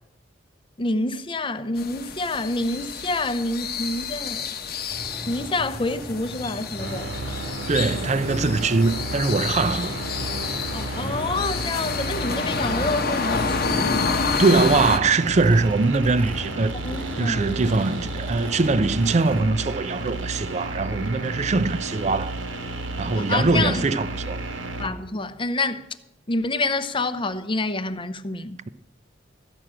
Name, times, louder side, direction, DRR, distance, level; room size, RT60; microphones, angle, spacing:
voice 1, 0.8-4.5 5.3-7.1 10.7-14.1 16.8-17.6 23.1-23.8 24.8-25.8 26.3-28.6, left 2 dB, 25° left, 0.6 m, -27 dB
sound 1, 1.8-15.0, left 5 dB, 55° left, 0.9 m, -29 dB
Race car auto racing / Idling / Accelerating revving vroom, 4.9-19.4, equal, 10° left, 1.5 m, -39 dB
sound 2, 6.8-24.9, right 2 dB, 90° right, 1.5 m, -32 dB
voice 2, 7.7-10.0 14.4-16.7 17.2-22.4 23.0-24.4, right 3 dB, 35° right, 0.5 m, -22 dB
13.5 x 6.2 x 8.7 m
head